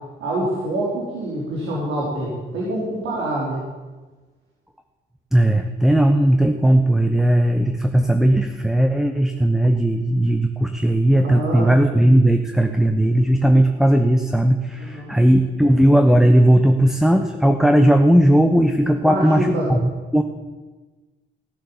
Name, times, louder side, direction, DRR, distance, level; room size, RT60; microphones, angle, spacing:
voice 1, 0.2-3.6 11.1-11.7 14.8-15.1 19.0-19.7, right 1 dB, 80° right, -5 dB, 3.7 m, -26 dB
voice 2, 5.3-20.2, right 1 dB, ahead, 6 dB, 0.9 m, -17 dB
15.5 x 7.4 x 7.2 m, 1.3 s
cardioid pair, 90°, 20 cm